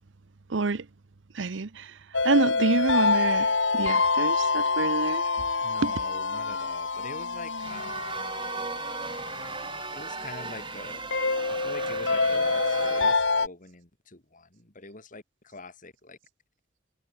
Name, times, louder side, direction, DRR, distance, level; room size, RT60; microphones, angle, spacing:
voice 1, 0.5-0.9 1.3-2.0 2.2-5.2 5.8-6.0, right 3 dB, 80° right, 0.8 m, -27 dB
sound 1, 2.1-13.5, left 4 dB, 80° left, 3.2 m, -27 dB
voice 2, 5.6-8.2 9.9-11.1 11.4-16.2, left 3 dB, 45° left, 3.5 m, -44 dB
sound 2, 7.6-13.1, right 4 dB, 25° right, 1.0 m, -36 dB
head